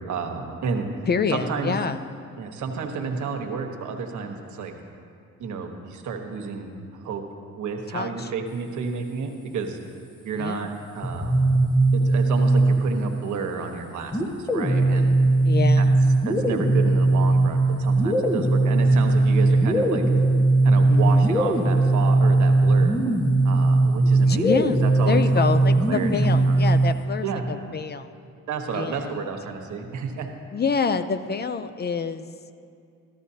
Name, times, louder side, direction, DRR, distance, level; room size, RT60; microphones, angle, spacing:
voice 1, 0.1-0.9 1.3-1.8 2.4-4.7 5.4-6.7 7.0-7.2 7.6-9.8 10.2-11.4 11.9-15.1 15.8-15.9 16.2-20.0 20.6-23.0 23.4-24.5 24.8-25.4 25.9-26.6 27.2-27.4 28.5-30.3, right 5 dB, 75° right, 4 dB, 1.2 m, -31 dB
voice 2, 1.1-2.0 7.9-8.3 10.4-10.7 15.4-16.0 20.9-21.3 24.3-28.1 28.7-29.2 30.5-32.2, left 6 dB, 35° left, 11 dB, 0.5 m, -27 dB
sound 1, 11.0-13.2 14.1-27.0, right 2 dB, 15° left, 1.2 m, -19 dB
14.5 x 12.5 x 2.8 m, 2.3 s
cardioid pair, 90°, 30 cm